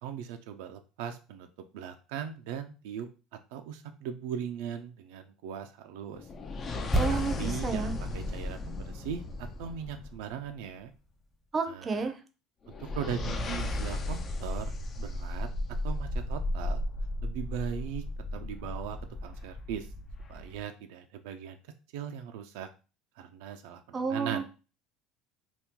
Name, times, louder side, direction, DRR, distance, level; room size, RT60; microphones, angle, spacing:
voice 1, 0.0-1.5 1.7-3.1 3.5-6.3 7.1-10.9 11.7-12.1 12.7-15.5 15.8-16.8 17.2-18.0 18.3-19.0 19.2-19.9 20.3-21.6 21.9-22.7 23.2-24.4, right 8 dB, 80° right, 6 dB, 0.4 m, -39 dB
sound 1, 6.1-10.5 12.6-20.6, left 2 dB, 35° left, 0.4 m, -35 dB
sound 2, 6.9-10.9 11.1-11.2, right 1 dB, 10° left, 0.8 m, -36 dB
voice 2, 7.0-7.9 11.5-12.1 23.9-24.4, right 4 dB, 30° right, 7 dB, 0.5 m, -31 dB
2.8 x 2.2 x 3.6 m, 0.33 s
supercardioid pair, 100°, 0 cm